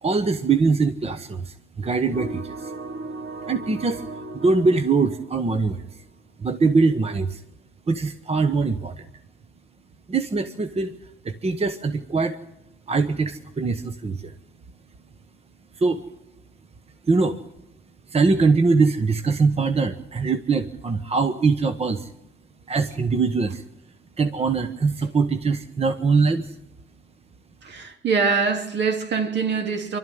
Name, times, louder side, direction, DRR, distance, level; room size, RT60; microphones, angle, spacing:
voice 1, 0.0-2.7 3.5-4.0 4.3-5.8 6.4-7.4 7.9-9.0 10.1-10.9 11.2-12.4 12.9-14.3 15.8-16.0 17.1-17.4 18.1-22.1 22.7-23.6 24.2-26.5, right 4 dB, 30° right, 1.1 m, -22 dB
sound 1, 2.1-6.0, right 2 dB, 80° right, 4.2 m, -36 dB
voice 2, 27.6-30.0, right 5 dB, 60° right, 2.8 m, -24 dB
25.5 x 12.5 x 9.3 m
cardioid pair, 90°, 20 cm